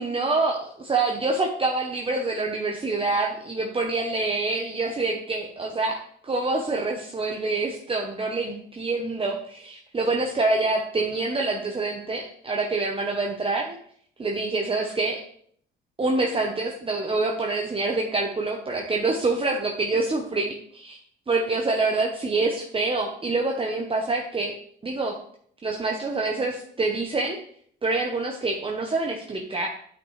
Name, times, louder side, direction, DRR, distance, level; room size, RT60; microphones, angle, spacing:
voice 1, 0.0-13.8 14.2-15.2 16.0-21.0 21.3-24.5 24.8-25.2 25.6-27.4 27.8-29.7, right 3 dB, 25° right, 0 dB, 1.0 m, -26 dB
9.6 x 5.6 x 3.3 m, 0.62 s
cardioid pair, 90°, 20 cm